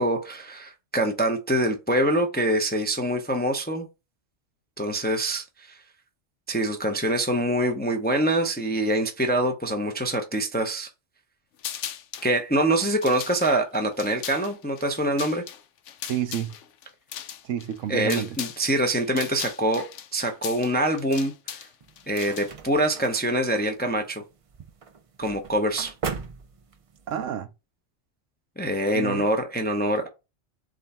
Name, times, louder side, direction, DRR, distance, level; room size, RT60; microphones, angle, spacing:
voice 1, 0.0-3.9 4.8-5.8 6.5-10.9 12.2-15.4 17.9-19.9 20.1-21.6 22.1-24.2 25.2-25.9 28.6-30.1, right 1 dB, 15° left, 0.4 m, -25 dB
sound 1, 11.6-12.3 12.8-18.6 18.9-22.7, left 10 dB, 75° left, 0.9 m, -38 dB
voice 2, 16.1-16.6 17.4-18.4 27.1-27.5 28.9-29.2, right 10 dB, 85° right, 1.0 m, -29 dB
sound 2, 21.8-27.1, right 6 dB, 55° right, 0.3 m, -39 dB
3.8 x 3.4 x 4.1 m
omnidirectional pair, 1.3 m